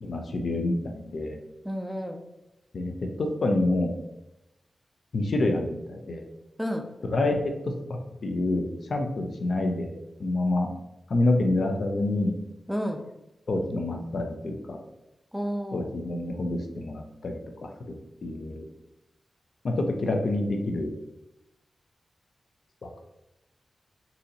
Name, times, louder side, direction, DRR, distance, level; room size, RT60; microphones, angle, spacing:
voice 1, 0.0-1.4 2.7-2.9 3.2-3.9 5.1-6.2 7.0-7.4 8.2-9.9 10.2-10.7 11.1-12.3 13.5-14.8 15.7-18.6 19.6-20.9, left 2 dB, 70° left, 3 dB, 0.5 m, -27 dB
voice 2, 1.6-2.2 6.6-6.9 12.7-13.0 15.3-15.9, equal, ahead, 4 dB, 0.5 m, -31 dB
3.9 x 2.7 x 2.8 m, 0.92 s
cardioid pair, 50°, 0 cm